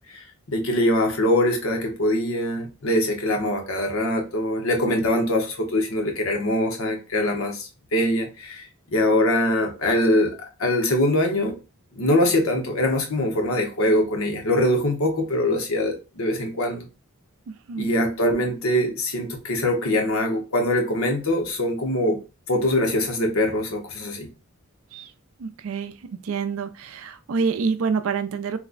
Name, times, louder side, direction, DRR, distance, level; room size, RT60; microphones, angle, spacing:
voice 1, 0.1-8.7 8.9-10.3 10.6-11.5 11.9-16.9 17.8-22.2 22.5-24.3, left 1 dB, 65° left, 1.0 m, -23 dB
voice 2, 17.5-17.9 24.9-25.1 25.4-25.9 26.2-28.6, right 5 dB, 70° right, 0.4 m, -27 dB
3.1 x 2.1 x 3.8 m
head